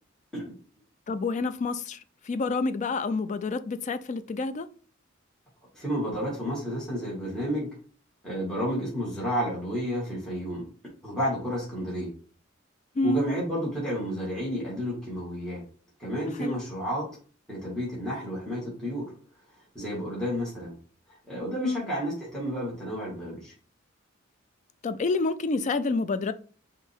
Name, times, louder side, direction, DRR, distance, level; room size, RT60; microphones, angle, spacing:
voice 1, 1.1-2.0 2.2-4.7 13.0-13.2 16.4-16.6 21.6-21.8 24.8-26.3, left 3 dB, 35° left, 0.3 m, -28 dB
voice 2, 5.7-7.7 8.2-10.6 11.0-12.1 13.0-15.6 16.0-17.1 17.5-19.1 19.7-20.7 21.3-23.5, equal, 5° left, 2.0 m, -31 dB
5.3 x 2.7 x 3.5 m
head